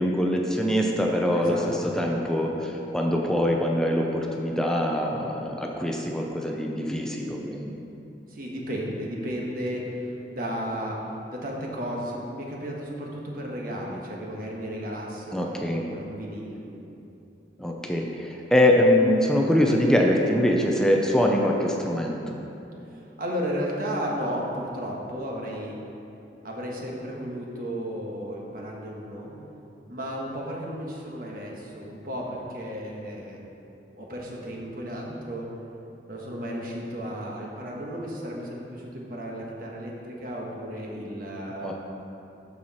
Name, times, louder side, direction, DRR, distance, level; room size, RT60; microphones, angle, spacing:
voice 1, 0.0-7.8 15.3-15.8 17.6-22.4 41.6-41.7, left 1 dB, 5° left, 0 dB, 0.5 m, -23 dB
voice 2, 1.3-1.9 8.3-11.0 11.3-16.6 23.2-25.8 26.4-29.3 29.9-33.4 33.9-35.4 36.1-41.7, equal, 50° right, -2 dB, 1.4 m, -34 dB
13.5 x 4.8 x 4.2 m, 2.9 s
head